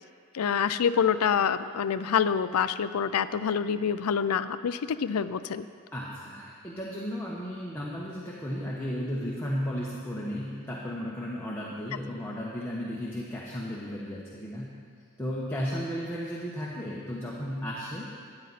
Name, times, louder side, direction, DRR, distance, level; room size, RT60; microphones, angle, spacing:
voice 1, 0.3-5.7, left 7 dB, 80° left, 13 dB, 0.4 m, -26 dB
voice 2, 5.9-14.7 15.2-18.1, equal, 10° left, -5 dB, 1.1 m, -34 dB
13.5 x 9.7 x 4.1 m, 2.1 s
head